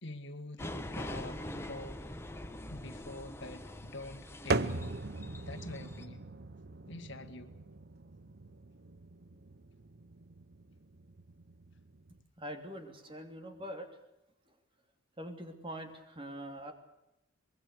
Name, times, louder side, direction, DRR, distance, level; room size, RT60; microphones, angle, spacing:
voice 1, 0.0-2.1 2.7-5.0 5.5-6.2 6.9-7.5, left 2 dB, 65° left, 9 dB, 1.9 m, -46 dB
sound 1, 0.6-6.0, left 1 dB, 15° left, 1.5 m, -43 dB
sound 2, 4.5-12.2, right 3 dB, 55° right, 1.0 m, -40 dB
voice 2, 12.4-14.0 15.2-16.7, equal, 25° right, 6 dB, 3.0 m, -43 dB
24.0 x 21.5 x 6.8 m, 0.92 s
head